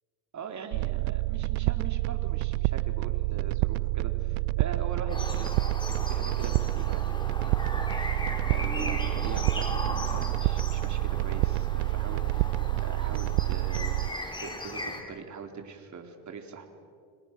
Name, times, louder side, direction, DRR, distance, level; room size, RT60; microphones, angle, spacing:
voice 1, 0.3-5.5 6.0-7.1 7.4-7.6 8.0-8.1 8.4-12.5 12.8-14.0 14.4-16.7, right 5 dB, 35° right, 4 dB, 4.0 m, -42 dB
sound 1, 0.7-14.1, right 21 dB, 65° right, 0.6 m, -28 dB
sound 2, 5.1-15.0, left 1 dB, 10° left, 4.9 m, -37 dB
29.5 x 26.5 x 6.2 m, 2.3 s
supercardioid pair, 90°, 49 cm